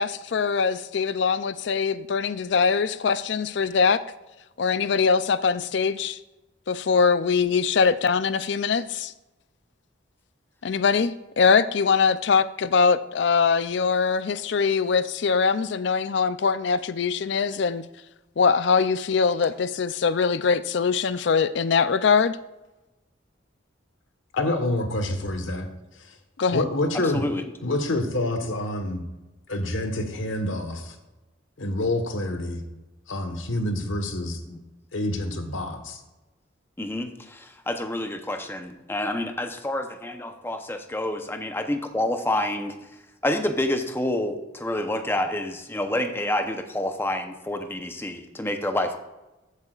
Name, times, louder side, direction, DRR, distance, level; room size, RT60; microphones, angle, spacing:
voice 1, 0.0-4.0 4.6-6.2 6.7-9.1 10.6-17.8 18.4-22.4 26.4-26.6, left 5 dB, 60° left, 14 dB, 0.4 m, -22 dB
voice 2, 24.3-25.7 26.0-26.2 26.5-27.2 27.6-29.0 29.5-31.0 31.6-32.6 33.1-34.4 34.9-36.0, left 1 dB, 80° left, 7 dB, 1.3 m, -27 dB
voice 3, 26.9-27.4 34.5-34.6 36.8-42.8 43.2-49.0, left 1 dB, 10° left, 6 dB, 0.7 m, -28 dB
14.5 x 8.2 x 2.4 m, 1.0 s
head